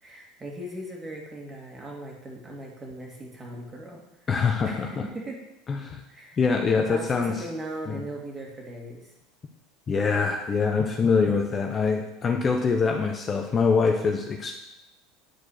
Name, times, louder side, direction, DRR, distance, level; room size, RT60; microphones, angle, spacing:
voice 1, 0.0-4.0 4.6-5.4 6.1-6.4 6.7-9.1, right 1 dB, 20° right, -1 dB, 2.5 m, -39 dB
voice 2, 4.3-5.0 5.7-6.0 6.4-7.3 7.9-8.0 9.9-14.5, left 5 dB, 30° left, 3 dB, 1.0 m, -24 dB
10.0 x 4.7 x 6.6 m, 0.91 s
supercardioid pair, 120°, 0 cm